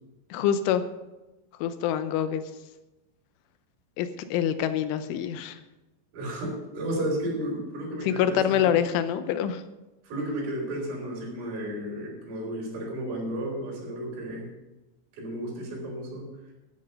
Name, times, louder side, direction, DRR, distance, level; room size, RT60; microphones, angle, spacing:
voice 1, 0.3-0.8 1.6-2.4 4.0-5.6 8.0-9.6, left 9 dB, 85° left, 10 dB, 3.3 m, -25 dB
voice 2, 6.1-8.8 10.0-14.5 15.2-16.3, right 1 dB, 85° right, -2 dB, 6.8 m, -33 dB
15.0 x 9.3 x 5.4 m, 1.0 s
omnidirectional pair, 5.6 m